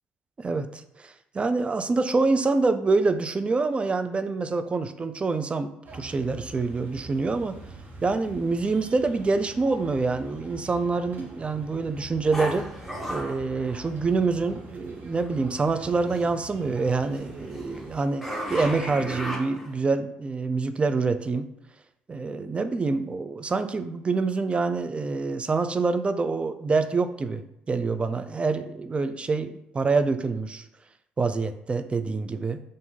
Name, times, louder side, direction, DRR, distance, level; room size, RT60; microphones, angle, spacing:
voice 1, 0.4-7.6 8.0-12.7 13.1-21.5 22.1-30.6 31.2-32.6, right 3 dB, 25° right, 9 dB, 0.3 m, -26 dB
sound 1, 5.8-18.0, right 1 dB, 45° right, 0.9 m, -45 dB
sound 2, 12.3-14.5 15.2-16.3 16.8-19.9, equal, ahead, 1.1 m, -35 dB
2.6 x 2.5 x 3.7 m, 0.81 s
hypercardioid pair, 50°, 4 cm